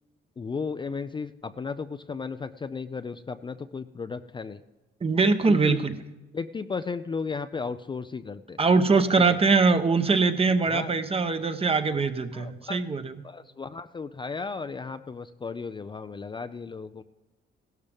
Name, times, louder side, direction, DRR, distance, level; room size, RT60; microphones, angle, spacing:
voice 1, 0.4-4.6 5.6-5.9 6.3-8.6 10.7-10.9 12.3-12.8 13.2-17.0, left 5 dB, 25° left, 10 dB, 0.4 m, -35 dB
voice 2, 5.0-6.0 8.6-13.2, right 4 dB, 30° right, 9 dB, 1.0 m, -22 dB
16.0 x 12.0 x 3.5 m, 1.1 s
cardioid pair, 90°, 20 cm